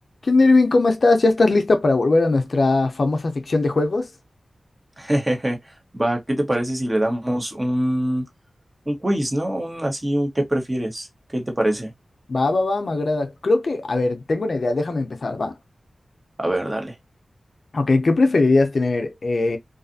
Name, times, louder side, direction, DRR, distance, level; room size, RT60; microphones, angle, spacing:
voice 1, 0.2-4.1 12.3-15.5 17.7-19.6, left 3 dB, 60° left, 0.5 m, -19 dB
voice 2, 5.0-5.6 5.9-8.3 8.9-11.1 11.3-11.9 16.4-16.9, right 1 dB, 25° right, 0.9 m, -23 dB
2.6 x 2.4 x 2.5 m
wide cardioid pair, 70°, 0 cm